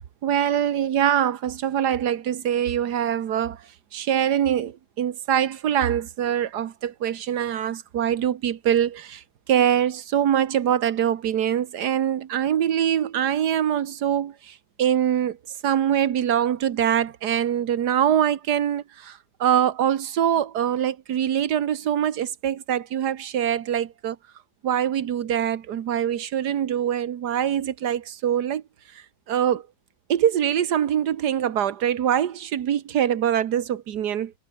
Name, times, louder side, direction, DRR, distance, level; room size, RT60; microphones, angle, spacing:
voice 1, 0.2-3.6 3.9-15.4 15.6-24.2 24.6-28.6 28.9-29.7 30.1-34.3, right 10 dB, 80° right, 1.7 m, -24 dB
omnidirectional pair, 1.7 m